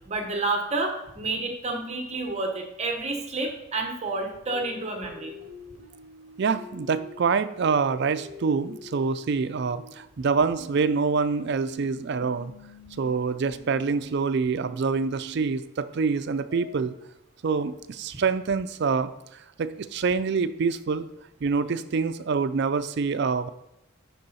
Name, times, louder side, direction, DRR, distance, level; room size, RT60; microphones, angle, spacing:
voice 1, 0.1-5.3, right 2 dB, 30° right, 3 dB, 1.1 m, -29 dB
sound 1, 4.5-9.9 10.6-15.5 16.5-16.8, right 1 dB, 75° left, 1.2 m, -45 dB
voice 2, 6.4-12.5 13.0-16.9 17.4-21.1 21.4-23.5, right 5 dB, 55° right, 10 dB, 0.4 m, -26 dB
10.0 x 3.9 x 4.2 m, 0.87 s
head